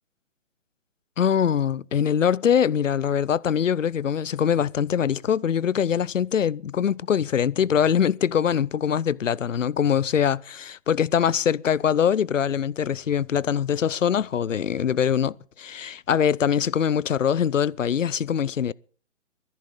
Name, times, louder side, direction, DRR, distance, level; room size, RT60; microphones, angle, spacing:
voice 1, 1.2-18.7, left 8 dB, 85° left, 0.7 m, -23 dB
20.5 x 14.0 x 3.8 m
hypercardioid pair, 150°, 37 cm